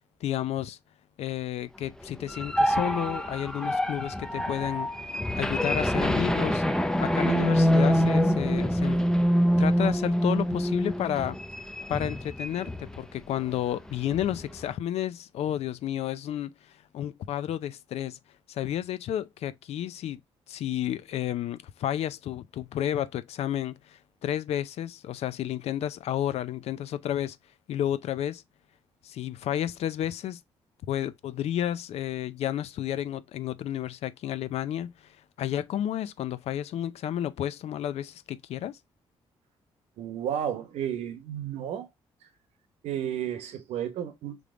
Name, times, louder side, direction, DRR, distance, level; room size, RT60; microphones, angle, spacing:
voice 1, 0.2-0.8 1.2-4.9 5.3-6.6 7.0-9.1 9.6-11.4 11.9-16.5 16.9-18.2 18.5-20.2 20.5-27.4 27.7-28.4 29.0-30.4 30.9-34.9 35.4-38.8, left 11 dB, 75° left, 0.5 m, -31 dB
sound 1, 2.0-13.0 13.4-13.5 13.9-14.6, equal, 5° left, 0.6 m, -25 dB
voice 2, 40.0-41.9 42.8-44.4, right 10 dB, 85° right, 0.9 m, -32 dB
3.6 x 3.3 x 3.7 m
cardioid pair, 70°, 11 cm